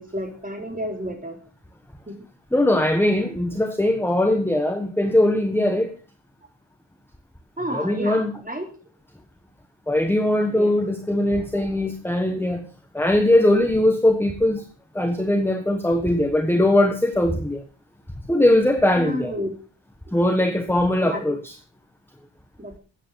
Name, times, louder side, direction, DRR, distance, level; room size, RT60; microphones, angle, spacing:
voice 1, 0.0-1.4 2.1-2.2 7.6-8.7 10.5-10.7 19.0-19.5 20.1-20.2 21.0-21.4 22.6-22.7, equal, 15° right, 3 dB, 3.6 m, -31 dB
voice 2, 2.5-5.9 7.7-8.3 9.9-12.7 12.9-14.6 14.9-17.6 18.3-19.3 20.1-21.5, left 1 dB, 5° left, 5 dB, 1.4 m, -20 dB
13.5 x 8.9 x 6.9 m, 0.38 s
wide cardioid pair, 155°, 48 cm